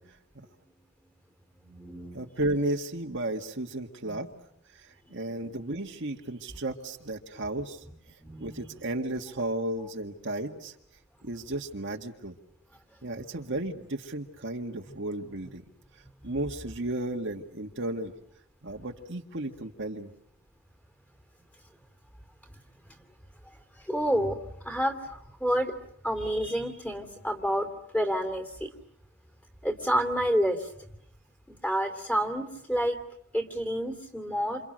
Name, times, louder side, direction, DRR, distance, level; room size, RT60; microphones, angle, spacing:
voice 1, 1.6-2.3 4.0-4.2 5.1-5.2 8.2-8.9 14.9-15.0 16.2-16.3 23.5-25.7 26.0-28.7 29.6-30.9 31.5-33.0 33.3-34.6, equal, 5° left, 4 dB, 3.0 m, -30 dB
voice 2, 2.1-4.3 4.7-7.8 8.4-10.7 11.2-12.4 13.0-15.6 16.2-18.1 18.6-20.1, right 1 dB, 60° right, 2 dB, 1.9 m, -34 dB
28.5 x 28.0 x 6.5 m, 0.71 s
head